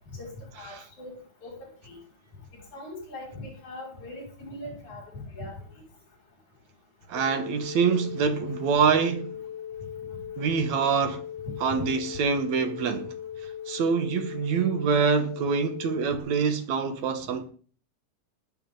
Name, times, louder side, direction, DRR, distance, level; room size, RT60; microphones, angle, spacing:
voice 1, 0.1-1.6 1.8-2.0 2.5-5.6 11.7-11.9, left 1 dB, 75° left, 7.0 m, -40 dB
sound 1, 7.1-16.2, left 9 dB, 55° left, 2.9 m, -39 dB
voice 2, 7.1-9.3 10.4-11.2 11.6-13.1 13.7-17.4, right 6 dB, 70° right, 2.6 m, -25 dB
19.5 x 8.4 x 3.9 m
omnidirectional pair, 3.4 m